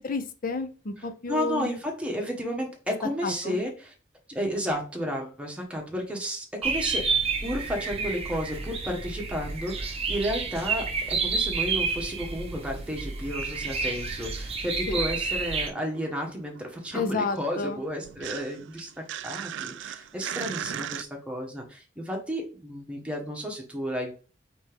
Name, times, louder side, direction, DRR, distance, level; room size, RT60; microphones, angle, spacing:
voice 1, 0.0-1.7 3.2-3.6 14.9-15.0 16.9-17.8, left 3 dB, 45° left, 9 dB, 0.6 m, -31 dB
voice 2, 1.3-3.9 4.3-7.1 7.4-24.1, equal, 5° right, 1 dB, 1.1 m, -32 dB
sound 1, 6.6-15.7, right 4 dB, 35° right, 0.7 m, -30 dB
sound 2, 13.2-15.2 15.4-21.0, right 10 dB, 70° right, 0.3 m, -39 dB
4.3 x 3.4 x 3.4 m, 0.36 s
head